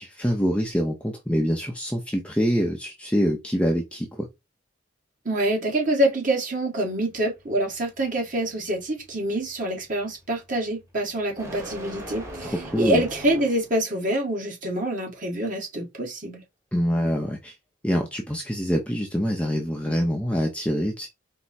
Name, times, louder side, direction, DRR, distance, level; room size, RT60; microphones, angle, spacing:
voice 1, 0.0-4.3 12.4-13.0 16.7-17.5 17.8-21.1, equal, 5° left, 0.6 m, -25 dB
voice 2, 5.2-16.4, right 1 dB, 45° right, 1.5 m, -26 dB
sound 1, 6.9-13.8, right 1 dB, 15° right, 1.0 m, -42 dB
4.6 x 2.1 x 4.1 m
head